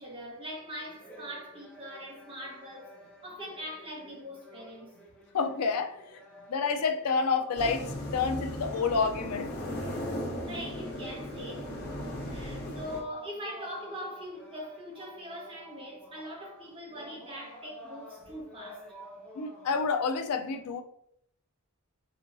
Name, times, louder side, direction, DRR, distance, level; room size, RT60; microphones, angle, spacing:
voice 1, 0.0-4.9 10.5-11.7 12.2-18.9, equal, 25° right, 1.2 m, -42 dB
sound 1, 0.6-20.3, equal, 5° left, 0.9 m, -51 dB
voice 2, 5.3-6.2 6.5-9.8 19.3-20.8, left 5 dB, 85° left, 0.4 m, -29 dB
sound 2, 7.6-13.0, equal, 50° left, 1.0 m, -37 dB
4.2 x 3.6 x 2.6 m
head